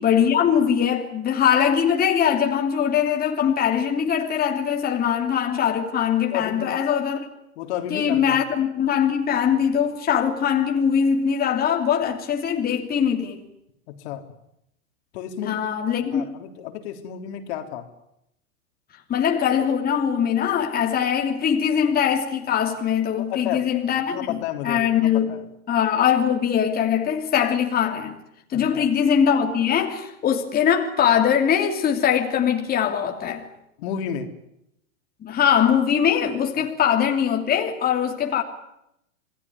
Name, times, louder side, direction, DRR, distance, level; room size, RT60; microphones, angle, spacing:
voice 1, 0.0-7.3 7.9-13.4 15.4-16.2 19.1-28.2 28.5-33.5 35.2-38.4, left 8 dB, 25° left, 3.0 m, -22 dB
voice 2, 6.3-6.7 7.6-8.4 13.9-14.3 15.1-15.6 16.1-17.9 23.2-23.7 24.1-25.4 28.5-28.9 33.8-34.3 36.6-36.7, left 9 dB, 55° left, 3.6 m, -32 dB
27.0 x 19.5 x 9.8 m
hypercardioid pair, 115°, 40 cm